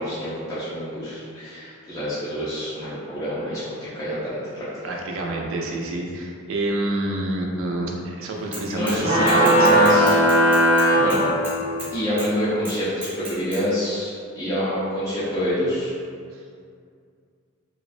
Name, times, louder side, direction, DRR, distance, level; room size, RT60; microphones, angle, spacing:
voice 1, 0.0-4.9 8.7-10.2 11.0-11.3 11.9-15.9, equal, 15° left, -12 dB, 0.4 m, -27 dB
voice 2, 4.8-10.2, right 1 dB, 65° right, 0 dB, 0.4 m, -27 dB
Bicycle / Mechanisms, 8.5-9.0 9.3-11.9 12.2-12.3 12.6-13.6, right 1 dB, 10° right, 0.9 m, -35 dB
sound 1, 9.0-11.9, equal, 90° left, 0.8 m, -18 dB
2.4 x 2.1 x 2.4 m, 2.3 s
head